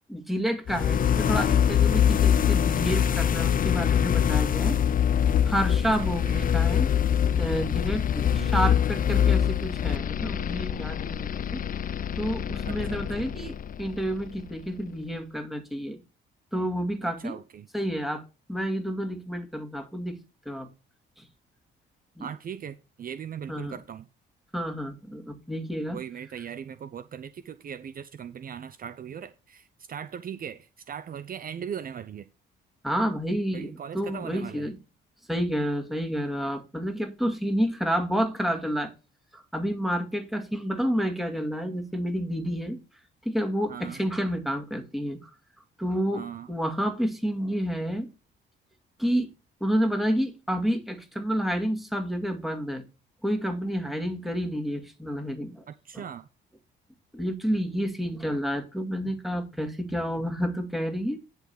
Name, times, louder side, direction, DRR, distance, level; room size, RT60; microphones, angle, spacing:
voice 1, 0.1-4.8 5.4-6.9 7.4-11.6 12.2-16.0 16.5-17.3 17.7-18.2 18.5-20.2 20.5-20.7 21.2-21.3 22.2-22.3 23.5-23.7 24.5-26.0 32.8-34.8 35.3-38.9 39.3-42.8 43.2-45.3 45.8-46.2 46.5-48.1 49.0-49.3 49.6-52.8 53.2-55.6 55.9-56.0 57.1-61.2, equal, ahead, 2.1 m, -29 dB
sound 1, 0.7-14.5, left 9 dB, 45° left, 0.6 m, -24 dB
voice 2, 6.0-6.4 8.3-8.6 12.6-13.3 17.0-17.7 22.2-24.1 25.9-32.3 33.5-34.7 43.7-44.0 46.1-46.5 55.7-56.3, right 8 dB, 45° right, 0.6 m, -39 dB
10.5 x 4.0 x 7.0 m
cardioid pair, 90°, 20 cm